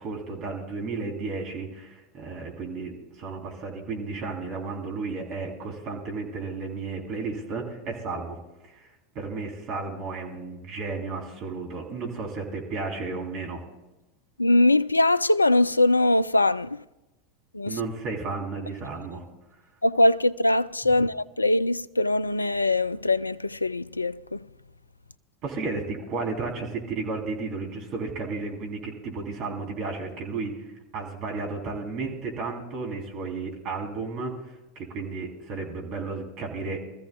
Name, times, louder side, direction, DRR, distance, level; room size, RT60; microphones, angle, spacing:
voice 1, 0.0-2.9 3.2-8.4 8.7-8.9 9.1-13.6 17.7-19.2 25.4-30.6 30.9-36.8, right 4 dB, 45° right, 3.4 m, -33 dB
voice 2, 14.4-16.8 17.5-17.8 19.8-24.5, left 2 dB, 85° left, 0.4 m, -22 dB
24.0 x 14.5 x 2.3 m
figure-of-eight pair, 85°, 0 cm